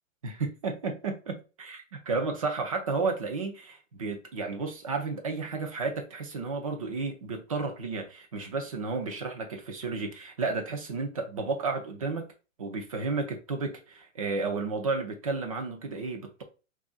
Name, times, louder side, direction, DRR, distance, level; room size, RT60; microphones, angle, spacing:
voice 1, 0.2-12.3 12.6-16.4, right 4 dB, 25° right, 0.4 m, -32 dB
3.4 x 2.5 x 3.8 m
hypercardioid pair, 160°, 40 cm